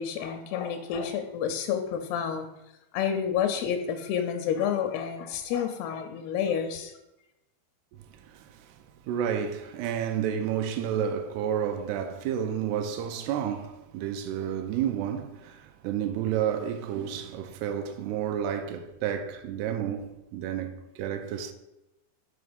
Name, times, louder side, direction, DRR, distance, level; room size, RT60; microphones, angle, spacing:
voice 1, 0.0-2.5 2.9-6.9, left 8 dB, 85° left, 2.5 m, -29 dB
voice 2, 8.3-8.7 9.1-21.5, right 9 dB, 85° right, 2.6 m, -31 dB
6.9 x 3.9 x 5.0 m
omnidirectional pair, 4.7 m